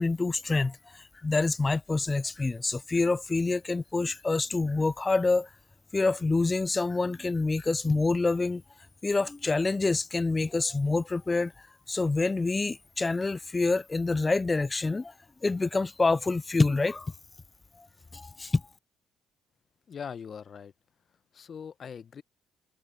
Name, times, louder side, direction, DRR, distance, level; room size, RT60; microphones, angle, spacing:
voice 1, 0.0-5.5 5.9-8.6 9.0-11.5 11.9-15.1 15.4-17.1 17.8-17.9 18.1-18.6, left 3 dB, 25° left, 0.3 m, -27 dB
voice 2, 19.9-20.7 21.3-22.2, left 7 dB, 50° left, 0.8 m, -41 dB
supercardioid pair, 60°, 0 cm